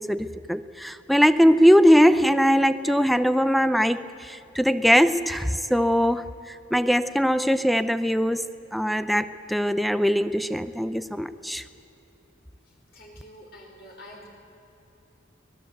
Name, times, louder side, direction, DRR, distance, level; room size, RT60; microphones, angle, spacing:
voice 1, 0.0-11.6, equal, ahead, 12 dB, 0.6 m, -21 dB
voice 2, 12.9-14.3, left 1 dB, 55° left, -1 dB, 5.1 m, -46 dB
24.5 x 19.0 x 8.1 m, 3.0 s
head